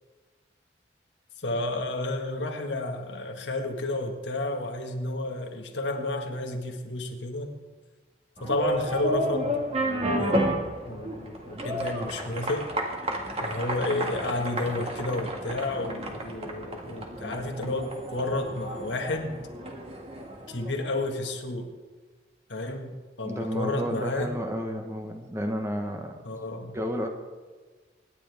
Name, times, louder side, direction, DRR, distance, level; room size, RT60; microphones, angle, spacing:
voice 1, 1.4-7.5 8.4-10.6 10.9-12.7 13.4-19.4 20.5-21.7 22.5-22.9 23.2-24.3 26.2-26.7, left 2 dB, 85° left, 3 dB, 1.8 m, -31 dB
sound 1, 8.4-21.1, right 1 dB, 35° right, 1.8 m, -32 dB
voice 2, 23.2-26.1 26.7-27.1, equal, 15° right, 4 dB, 1.2 m, -31 dB
25.0 x 10.5 x 3.5 m, 1.4 s
head